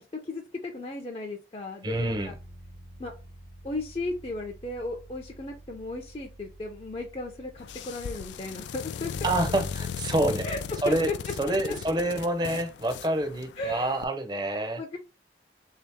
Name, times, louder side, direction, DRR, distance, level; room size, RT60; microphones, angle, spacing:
voice 1, 0.0-2.3 3.0-3.1 3.6-9.3 10.4-11.0 11.4-11.8 13.6-14.0 14.8-15.0, left 2 dB, 30° left, 0.5 m, -36 dB
voice 2, 1.8-2.3 9.2-10.5 10.8-11.1 11.4-14.8, right 1 dB, 25° right, 0.6 m, -27 dB
sound 1, 1.9-13.8, right 1 dB, 75° right, 0.8 m, -52 dB
sound 2, 7.6-14.0, left 6 dB, 90° left, 0.3 m, -37 dB
3.6 x 2.8 x 3.4 m
head